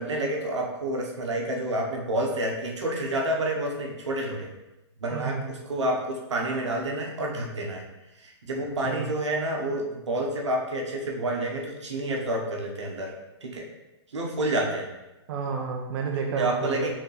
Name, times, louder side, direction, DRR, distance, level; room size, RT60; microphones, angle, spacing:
voice 1, 0.0-4.5 5.0-7.8 8.2-13.1 13.4-13.7 14.1-14.9 16.3-16.9, right 1 dB, 90° right, 0 dB, 1.0 m, -29 dB
voice 2, 5.1-5.4 8.6-9.1 15.3-16.9, right 5 dB, 50° right, 1 dB, 0.6 m, -31 dB
4.4 x 3.5 x 3.2 m, 0.99 s
hypercardioid pair, 130°, 15 cm